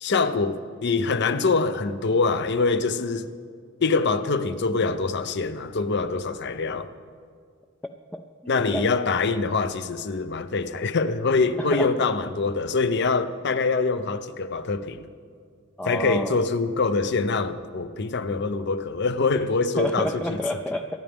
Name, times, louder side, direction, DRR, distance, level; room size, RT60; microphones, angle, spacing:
voice 1, 0.0-3.3 3.8-6.9 8.5-15.1 15.8-20.4, left 4 dB, 55° left, 0.6 m, -24 dB
voice 2, 7.8-8.2 8.7-8.9 11.6-11.9 15.8-16.4 19.8-21.0, left 1 dB, 5° left, 0.4 m, -29 dB
23.5 x 11.0 x 3.5 m
head